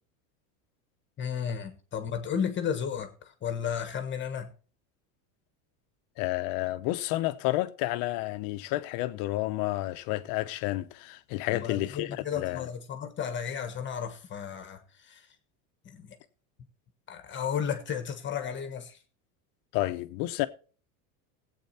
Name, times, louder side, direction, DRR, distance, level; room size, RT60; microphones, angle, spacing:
voice 1, 1.2-4.5 11.5-15.3 15.8-16.2 17.1-19.0, left 7 dB, 25° left, 1.3 m, -33 dB
voice 2, 6.2-12.1 12.3-12.7 19.7-20.5, left 17 dB, 55° left, 0.9 m, -30 dB
15.5 x 8.4 x 4.3 m
supercardioid pair, 140°, 41 cm